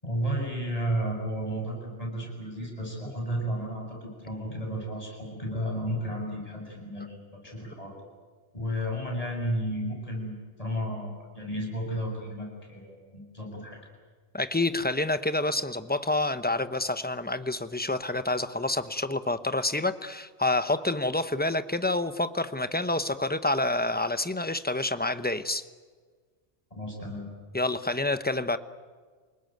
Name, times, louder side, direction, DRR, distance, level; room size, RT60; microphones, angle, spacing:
voice 1, 0.0-8.0 8.5-13.8 26.7-27.3, equal, 30° left, 0 dB, 7.9 m, -33 dB
voice 2, 14.3-25.6 27.5-28.6, left 2 dB, 10° left, 11 dB, 0.8 m, -28 dB
28.5 x 19.5 x 9.3 m, 1.5 s
omnidirectional pair, 1.2 m